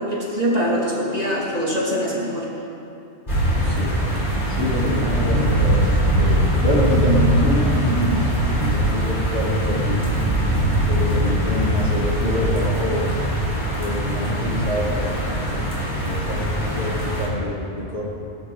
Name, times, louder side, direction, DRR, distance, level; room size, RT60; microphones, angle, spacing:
voice 1, 0.0-2.5, equal, 35° right, -4 dB, 2.4 m, -23 dB
sound 1, 3.3-17.3, right 1 dB, 45° left, 4.4 m, -21 dB
voice 2, 3.6-3.9 4.5-10.2 10.9-13.1 13.8-15.7 16.0-18.0, left 1 dB, 70° left, -6 dB, 3.3 m, -26 dB
19.0 x 12.0 x 3.8 m, 2.7 s
omnidirectional pair, 1.1 m